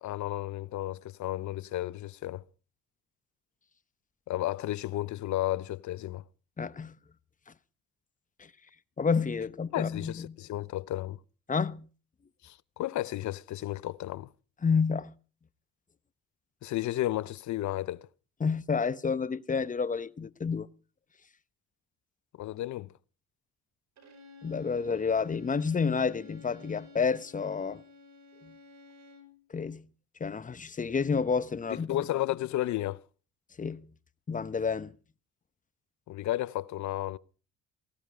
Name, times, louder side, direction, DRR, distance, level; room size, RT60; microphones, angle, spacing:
voice 1, 0.0-2.4 4.3-6.2 9.7-11.2 12.4-14.3 16.6-18.1 22.4-22.9 31.9-33.0 36.1-37.2, left 14 dB, 70° left, 0.7 m, -33 dB
voice 2, 6.6-7.0 9.0-10.4 11.5-11.9 14.6-15.1 18.4-20.7 24.4-27.8 28.4-28.5 29.5-29.9 30.2-32.0 33.6-33.9 34.3-34.9, left 5 dB, 25° left, 0.9 m, -29 dB
Bowed string instrument, 24.0-29.4, left 3 dB, 65° right, 4.8 m, -53 dB
18.0 x 15.0 x 4.8 m
cardioid pair, 90°, 30 cm